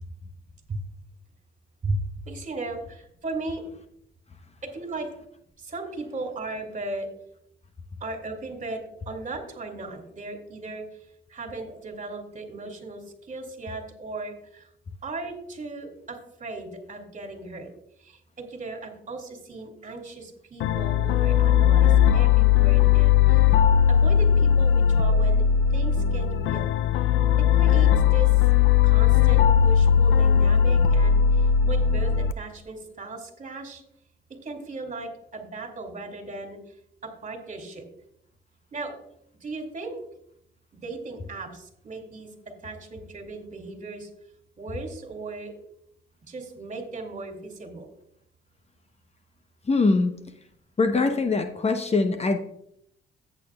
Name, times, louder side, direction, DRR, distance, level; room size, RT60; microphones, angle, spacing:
voice 1, 1.8-3.6 4.6-5.1 5.6-7.1 8.0-10.8 11.3-14.7 15.0-17.7 18.0-23.4 23.9-25.4 25.7-26.7 27.5-28.3 28.8-33.8 34.4-36.6 37.0-37.8 38.7-39.0 39.4-40.0 40.8-42.3 42.6-44.1 44.6-45.5 46.3-47.9, right 2 dB, 40° right, 4 dB, 2.5 m, -36 dB
sound 1, 20.6-32.3, left 8 dB, 80° left, 0.5 m, -19 dB
voice 2, 49.6-50.1 50.8-52.4, left 3 dB, 30° left, 7 dB, 0.9 m, -22 dB
14.0 x 8.5 x 2.3 m, 0.74 s
cardioid pair, 90°, 20 cm